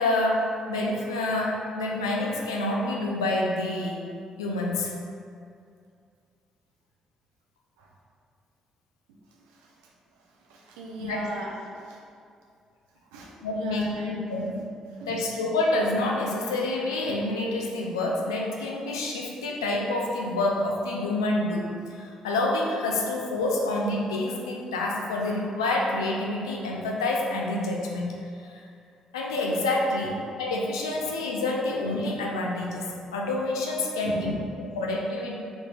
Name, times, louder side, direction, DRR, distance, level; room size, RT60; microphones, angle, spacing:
voice 1, 0.0-4.1 4.4-5.0 11.0-11.3 13.4-14.6 15.1-28.7 29.1-34.4 34.7-35.4, left 2 dB, 85° left, -1 dB, 0.3 m, -28 dB
voice 2, 9.3-9.8 10.2-12.0 13.0-14.2 14.9-15.2 30.0-30.1 34.0-34.8, right 2 dB, 80° right, -2 dB, 0.4 m, -40 dB
3.4 x 3.1 x 2.4 m, 2.4 s
hypercardioid pair, 40°, 2 cm